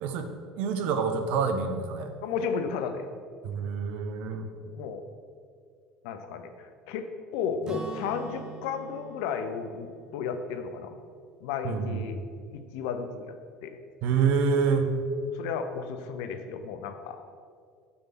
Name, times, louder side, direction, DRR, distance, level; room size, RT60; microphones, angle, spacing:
voice 1, 0.0-2.1 3.4-4.5 11.6-12.0 14.0-14.9, right 5 dB, 60° right, 7 dB, 0.6 m, -27 dB
voice 2, 2.2-3.1 4.6-5.0 6.0-7.1 7.3-11.0 11.4-12.2 12.5-13.4 13.6-13.8 15.3-17.2, left 6 dB, 70° left, 7 dB, 0.6 m, -33 dB
Acoustic guitar / Strum, 7.7-11.6, right 4 dB, 25° right, 0.8 m, -44 dB
6.9 x 3.5 x 5.5 m, 2.1 s
hypercardioid pair, 70°, 3 cm